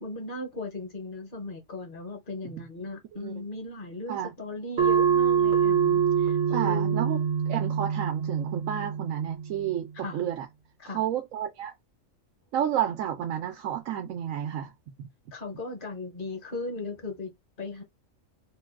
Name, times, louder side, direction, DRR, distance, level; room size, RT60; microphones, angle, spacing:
voice 1, 0.0-7.0 9.9-10.2 10.8-11.0 15.3-17.8, left 2 dB, 50° left, 0.8 m, -37 dB
voice 2, 3.1-3.4 4.1-4.3 6.5-10.5 10.9-11.7 12.5-14.7 15.0-15.1, right 10 dB, 90° right, 1.0 m, -31 dB
sound 1, 4.8-9.9, right 7 dB, 60° right, 0.8 m, -25 dB
2.6 x 2.3 x 3.5 m
omnidirectional pair, 1.4 m